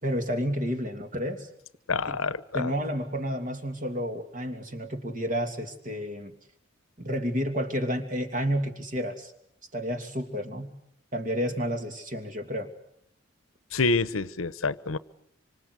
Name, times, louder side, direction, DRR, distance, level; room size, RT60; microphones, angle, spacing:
voice 1, 0.0-1.5 2.1-6.3 7.0-9.3 9.7-10.7 11.1-12.7, equal, 40° right, 6 dB, 2.9 m, -31 dB
voice 2, 1.9-2.7 13.7-15.0, left 4 dB, 90° left, 16 dB, 1.0 m, -27 dB
26.0 x 25.5 x 8.2 m, 0.71 s
head